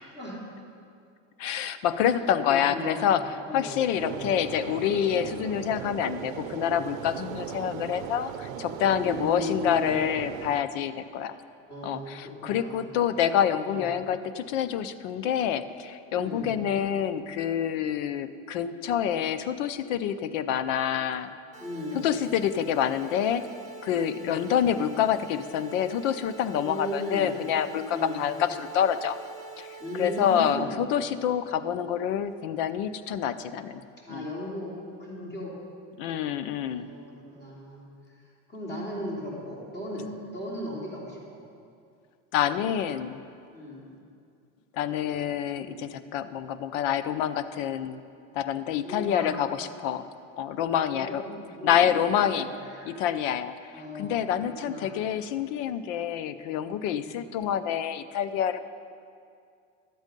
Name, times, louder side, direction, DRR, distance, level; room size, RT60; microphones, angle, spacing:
voice 1, 1.4-3.2 3.5-11.3 11.8-21.3 21.9-23.4 23.8-29.2 29.6-33.8 34.1-34.3 36.0-36.9 42.3-43.2 44.7-48.0 48.3-50.1 50.4-51.2 51.6-52.5 52.8-53.5 53.9-58.6, left 9 dB, 75° left, 13 dB, 0.7 m, -27 dB
voice 2, 2.1-4.3 5.2-5.4 8.9-9.7 11.7-12.9 13.6-13.9 16.1-16.5 21.6-22.0 24.1-24.4 26.6-27.3 27.9-28.2 29.8-30.8 34.0-34.7 35.0-35.5 36.6-41.4 43.5-43.9 48.8-49.4 50.8-52.9 53.7-54.9 57.0-57.2, left 1 dB, 25° left, -4 dB, 3.3 m, -37 dB
sound 1, 4.0-10.6, right 10 dB, 90° right, 0.7 m, -38 dB
sound 2, 21.5-30.5, right 5 dB, 20° right, 1.4 m, -45 dB
12.0 x 8.2 x 5.3 m, 2.4 s
supercardioid pair, 120°, 38 cm